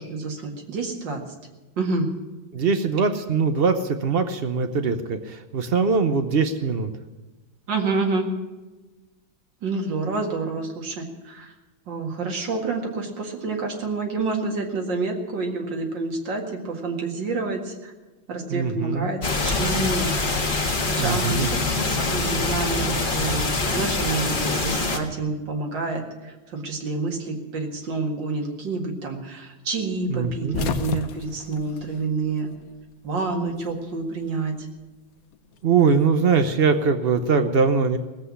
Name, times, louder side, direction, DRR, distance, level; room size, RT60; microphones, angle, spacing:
voice 1, 0.1-1.2 1.8-2.1 7.7-8.3 9.6-11.5 11.9-17.9 18.3-20.1 20.9-32.5 33.0-34.6, right 3 dB, 65° right, 2 dB, 2.6 m, -28 dB
voice 2, 2.5-6.9 18.5-19.1 21.0-21.5 30.1-30.6 35.6-38.0, right 5 dB, 85° right, 8 dB, 0.5 m, -22 dB
sound 1, 19.2-25.0, left 3 dB, 30° left, 1.5 m, -24 dB
sound 2, 30.2-32.8 33.0-34.1 35.3-36.8, left 6 dB, 55° left, 1.1 m, -32 dB
17.5 x 8.0 x 9.7 m, 1.2 s
omnidirectional pair, 2.2 m